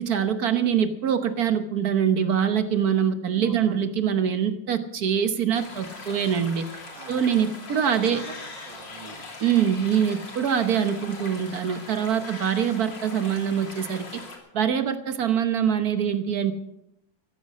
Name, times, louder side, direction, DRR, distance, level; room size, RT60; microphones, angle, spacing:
voice 1, 0.0-6.6 7.1-8.2 9.4-14.0 14.5-16.5, right 8 dB, 55° right, 9 dB, 1.4 m, -24 dB
voice 2, 3.3-3.9 6.9-7.2 7.8-9.2, right 6 dB, 85° right, 5 dB, 2.4 m, -43 dB
sound 1, 5.5-14.4, left 3 dB, 70° left, 3.5 m, -41 dB
14.5 x 14.0 x 6.3 m, 0.82 s
omnidirectional pair, 2.0 m